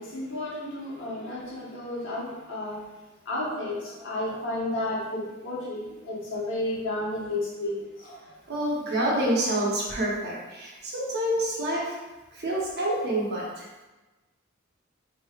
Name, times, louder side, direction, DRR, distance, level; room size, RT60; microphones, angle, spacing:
voice 1, 0.0-2.8 3.3-8.2, left 1 dB, 65° left, -6 dB, 1.2 m, -32 dB
voice 2, 8.5-12.0 12.3-13.7, right 1 dB, 55° right, -4 dB, 0.9 m, -27 dB
3.6 x 3.2 x 2.4 m, 1.1 s
head